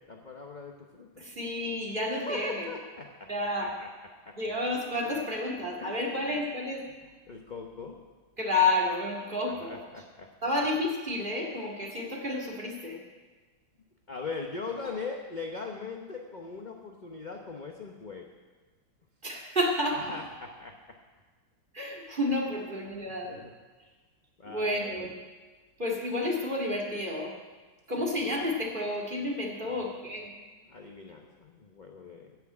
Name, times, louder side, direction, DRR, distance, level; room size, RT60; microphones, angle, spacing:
voice 1, 0.1-1.2 2.1-3.3 3.6-3.9 4.3-4.4 5.1-5.2 5.8-6.4 7.0-8.0 9.6-10.3 14.1-18.2 19.9-20.7 22.5-22.6 23.1-23.5 24.4-25.1 28.0-28.1 29.6-29.9 30.6-32.4, left 4 dB, 45° left, 1 dB, 0.6 m, -41 dB
voice 2, 1.2-2.7 3.3-3.7 4.4-6.8 8.4-9.8 10.4-13.0 19.2-20.2 21.7-23.4 24.4-25.1 25.8-27.3 27.9-30.3, left 1 dB, 25° right, -2 dB, 2.1 m, -30 dB
15.0 x 6.0 x 8.6 m, 1.4 s
omnidirectional pair, 2.2 m